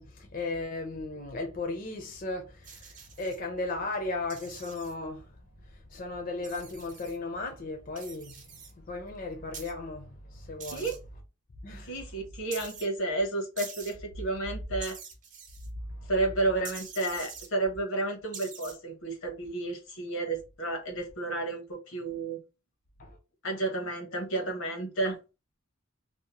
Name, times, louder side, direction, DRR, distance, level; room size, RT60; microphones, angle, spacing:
voice 1, 0.0-5.4 5.6-8.5 8.7-10.9 11.6-12.1 15.9-16.1 23.0-23.2, left 2 dB, 40° left, 0.4 m, -36 dB
sound 1, 2.6-3.4 4.3-4.9 6.4-7.2 8.0-8.7 9.5-9.7 10.6-11.0 12.5-12.9 13.6-13.9 14.8-15.7 16.7-17.5 18.3-18.8, right 6 dB, 40° right, 0.6 m, -45 dB
voice 2, 11.8-15.0 16.1-22.4 23.4-25.2, right 2 dB, 85° left, 0.9 m, -31 dB
2.7 x 2.0 x 2.9 m
head